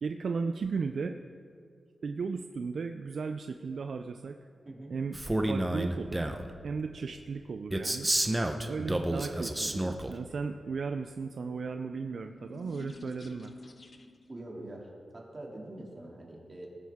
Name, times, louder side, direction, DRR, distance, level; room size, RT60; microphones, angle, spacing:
voice 1, 0.0-1.2 2.0-4.4 4.9-5.2 5.5-6.3 6.6-8.1 8.7-13.5, right 5 dB, 65° right, 6 dB, 0.4 m, -35 dB
voice 2, 4.6-4.9 14.3-16.7, right 1 dB, 35° right, -2 dB, 2.6 m, -44 dB
Male speech man speaking, 5.1-6.5 7.7-10.1, right 1 dB, 15° right, 0.8 m, -30 dB
sound 1, 11.5-14.4, left 2 dB, 45° left, 0.9 m, -49 dB
18.5 x 10.5 x 3.6 m, 2.3 s
wide cardioid pair, 90°, 0 cm